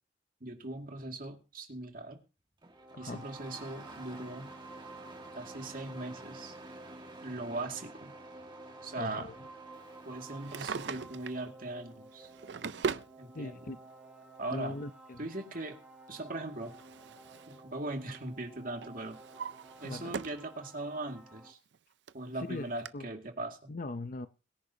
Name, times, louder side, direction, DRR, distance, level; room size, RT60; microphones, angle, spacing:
voice 1, 0.4-2.2 3.0-4.5 5.3-6.6 7.2-8.1 8.8-9.3 10.1-12.3 13.2-13.8 14.4-14.8 15.2-15.8 16.1-16.7 17.5-19.2 19.8-21.6 22.1-23.6, right 2 dB, 50° right, 2.3 m, -40 dB
Engine starting, 2.6-10.7, right 2 dB, 25° right, 1.9 m, -51 dB
sound 1, 2.7-21.5, right 2 dB, 5° right, 2.6 m, -53 dB
voice 2, 2.9-3.3 9.0-9.3 13.3-13.8 14.5-15.3 19.8-20.2 22.4-23.1 23.7-24.3, left 2 dB, 50° left, 0.7 m, -40 dB
Drawer open or close, 10.3-11.4 12.2-13.1 14.2-14.3 16.1-17.6 17.9-18.3 18.8-20.5 20.9-21.0 21.7-21.8 22.1-22.2 22.8-22.9, right 5 dB, 75° right, 0.5 m, -39 dB
22.0 x 10.5 x 2.8 m
head